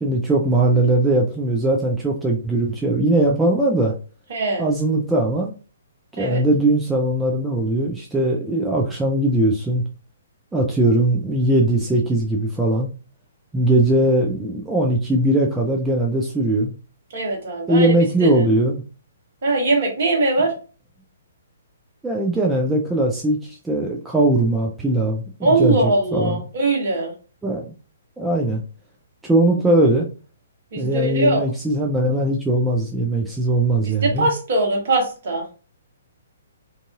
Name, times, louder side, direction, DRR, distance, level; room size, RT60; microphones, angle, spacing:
voice 1, 0.0-3.9 4.6-5.5 6.2-9.8 10.5-12.9 13.5-16.7 17.7-18.8 22.0-26.4 27.4-27.6 28.2-28.6 29.3-30.1 30.8-34.3, right 1 dB, 5° right, -1 dB, 0.4 m, -20 dB
voice 2, 4.3-4.7 6.2-6.4 17.1-17.9 18.2-18.4 19.4-20.5 25.4-27.1 30.7-31.4 33.8-35.5, right 2 dB, 50° right, 1 dB, 1.1 m, -21 dB
2.6 x 2.5 x 2.3 m, 0.35 s
figure-of-eight pair, 125°, 0 cm